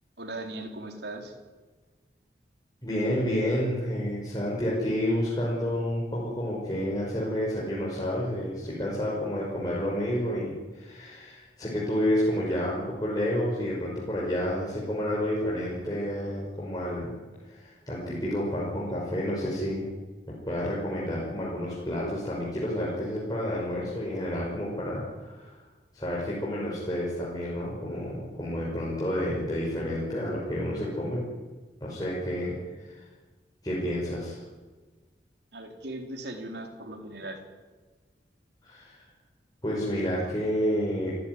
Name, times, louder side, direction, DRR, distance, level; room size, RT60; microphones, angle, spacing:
voice 1, 0.2-1.3 35.5-37.4, right 2 dB, 70° right, 4 dB, 4.0 m, -38 dB
voice 2, 2.8-17.2 17.4-19.9 20.5-25.6 25.9-31.2 31.8-32.5 32.8-33.0 33.6-34.4 38.6-39.0 39.6-41.1, equal, 20° left, -6 dB, 5.9 m, -30 dB
29.5 x 15.0 x 9.8 m, 1.3 s
head